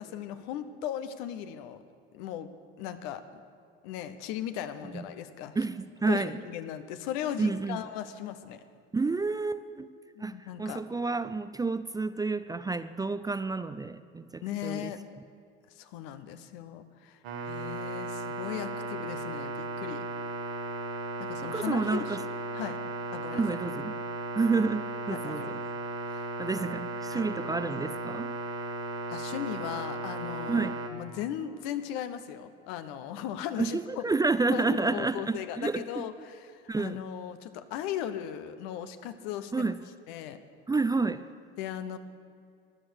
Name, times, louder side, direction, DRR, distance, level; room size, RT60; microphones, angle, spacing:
voice 1, 0.0-1.8 2.1-2.5 2.8-3.2 3.8-5.6 6.1-8.6 10.2-10.8 14.4-15.0 15.8-17.2 17.5-20.0 21.2-22.1 22.5-22.8 23.1-23.4 25.2-25.6 26.1-26.3 27.1-27.2 29.1-34.0 34.5-39.7 40.1-40.4 41.6-42.0, left 10 dB, 70° left, 10 dB, 1.1 m, -37 dB
voice 2, 5.6-6.4 7.4-7.8 8.9-9.9 10.2-14.9 21.4-22.2 23.3-24.0 24.4-25.6 26.4-28.3 30.5-30.8 33.6-36.0 36.7-37.0 39.5-39.8 40.7-41.2, right 3 dB, 15° right, 12 dB, 0.4 m, -30 dB
sound 1, 17.2-30.9, right 2 dB, 80° right, 2.0 m, -36 dB
15.5 x 10.5 x 6.4 m, 2.3 s
hypercardioid pair, 75°, 30 cm